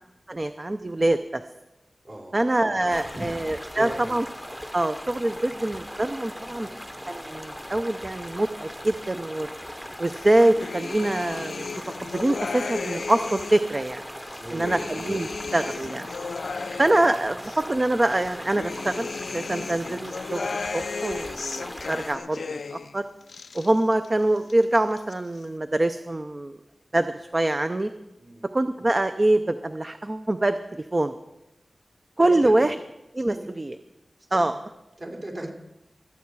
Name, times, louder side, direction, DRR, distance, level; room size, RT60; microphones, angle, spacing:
voice 1, 0.3-1.4 2.3-4.2 4.7-6.7 7.1-9.5 10.0-11.6 12.0-14.0 14.5-16.1 16.8-19.1 19.3-20.5 20.7-23.0 23.5-26.5 26.9-27.9 28.5-30.6 30.9-31.1 32.2-32.7 33.1-33.7 34.3-34.5, right 1 dB, 30° right, 9 dB, 0.5 m, -24 dB
voice 2, 2.0-2.5 2.9-3.3 3.7-4.1 5.5-5.6 6.5-6.8 14.4-14.9 16.4-16.8 28.2-28.4 32.2-32.7 33.3-33.5 34.3-34.6 35.0-35.5, right 1 dB, 50° right, 0 dB, 3.2 m, -37 dB
sound 1, 2.9-22.2, equal, ahead, 0.8 m, -39 dB
sound 2, 10.1-13.7 14.2-17.6 18.1-22.9 23.2-24.1 24.4-25.1, left 4 dB, 80° left, 0.4 m, -35 dB
21.5 x 8.4 x 4.7 m, 0.95 s
wide cardioid pair, 75°, 0 cm